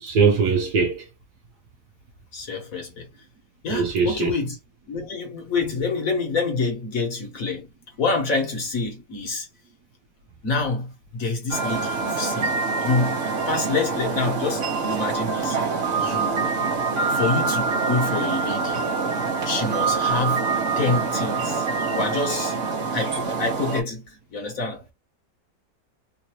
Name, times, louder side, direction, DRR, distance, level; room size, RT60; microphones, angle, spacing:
voice 1, 0.0-1.0 3.7-4.3, right 5 dB, 70° right, 1.5 m, -21 dB
voice 2, 2.3-3.1 3.6-4.6 4.9-7.7 8.0-9.5 10.4-13.2 13.5-15.6 16.0-16.5 17.1-18.9 19.3-22.6 22.9-24.9, left 3 dB, 55° left, 1.5 m, -27 dB
sound 1, 11.5-23.8, right 4 dB, 50° right, 1.4 m, -25 dB
3.8 x 2.6 x 3.0 m
omnidirectional pair, 1.8 m